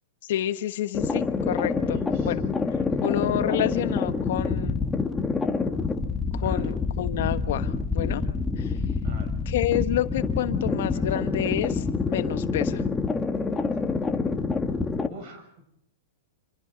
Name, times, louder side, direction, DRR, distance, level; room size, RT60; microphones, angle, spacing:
voice 1, 0.3-2.4 3.0-4.8 6.3-8.2 8.6-8.7 9.5-11.7 12.1-12.8, left 12 dB, 65° left, 10 dB, 1.2 m, -29 dB
sound 1, 0.9-15.1, left 4 dB, 10° left, 1.5 m, -27 dB
voice 2, 1.7-2.3 2.8-3.3 6.4-6.7 9.0-9.3 11.1-11.4 15.1-15.6, right 3 dB, 45° right, 6 dB, 7.3 m, -46 dB
27.5 x 26.0 x 4.0 m, 0.71 s
hypercardioid pair, 140°, 0 cm